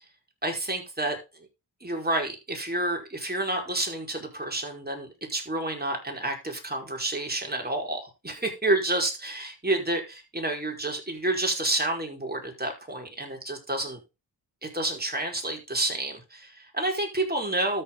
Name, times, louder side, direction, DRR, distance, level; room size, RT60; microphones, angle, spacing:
voice 1, 0.4-1.2 1.8-14.0 14.6-17.8, right 2 dB, 25° right, 1 dB, 4.8 m, -29 dB
13.0 x 7.0 x 3.9 m, 0.27 s
cardioid pair, 60°, 41 cm